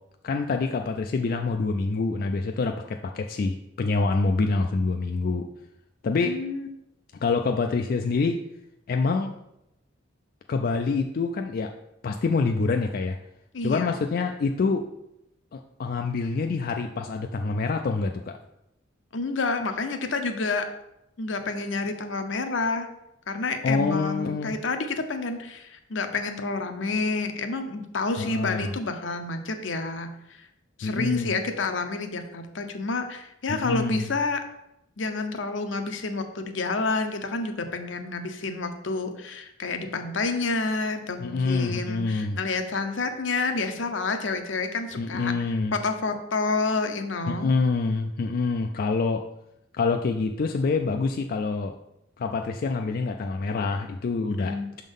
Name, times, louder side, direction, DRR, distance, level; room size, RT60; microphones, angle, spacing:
voice 1, 0.2-5.5 6.0-6.4 7.2-8.4 8.9-9.3 10.5-11.7 12.0-13.2 13.6-14.9 15.5-18.3 23.6-24.5 28.2-28.7 30.8-31.4 33.5-34.1 41.2-42.4 45.0-45.8 47.3-49.2 49.8-51.7 52.2-54.8, left 4 dB, 50° left, 4 dB, 0.3 m, -26 dB
voice 2, 6.2-6.7 13.5-14.0 19.1-20.6 21.2-22.9 23.3-30.4 30.8-34.4 35.0-45.3 45.7-47.6 54.3-54.7, left 3 dB, 75° left, 6 dB, 0.7 m, -29 dB
6.2 x 3.8 x 5.3 m, 0.85 s
head